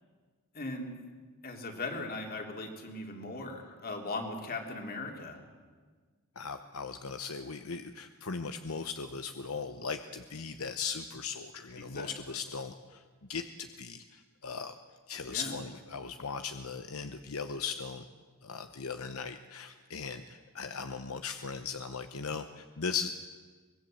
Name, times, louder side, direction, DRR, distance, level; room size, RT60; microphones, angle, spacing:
voice 1, 0.5-0.9 1.4-5.4 11.8-12.1 15.3-15.6, left 2 dB, 45° left, 3 dB, 3.4 m, -39 dB
voice 2, 6.4-13.0 13.3-14.7 15.1-18.1 18.4-23.1, left 5 dB, 75° left, 8 dB, 1.0 m, -38 dB
24.5 x 20.5 x 7.8 m, 1.5 s
head